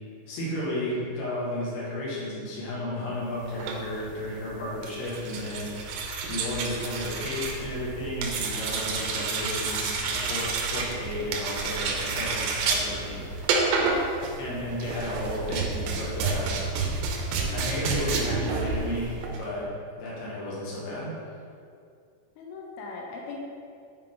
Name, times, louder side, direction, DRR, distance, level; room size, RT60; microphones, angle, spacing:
voice 1, 0.3-5.8 6.2-13.7 14.4-16.5 17.5-19.7 19.9-21.1, left 1 dB, 60° left, -7 dB, 3.4 m, -33 dB
sound 1, 3.5-19.5, right 4 dB, 85° right, 3.4 m, -30 dB
voice 2, 13.6-14.2 22.4-23.4, left 4 dB, 85° left, -1 dB, 3.5 m, -40 dB
10.0 x 5.0 x 3.8 m, 2.3 s
omnidirectional pair, 5.8 m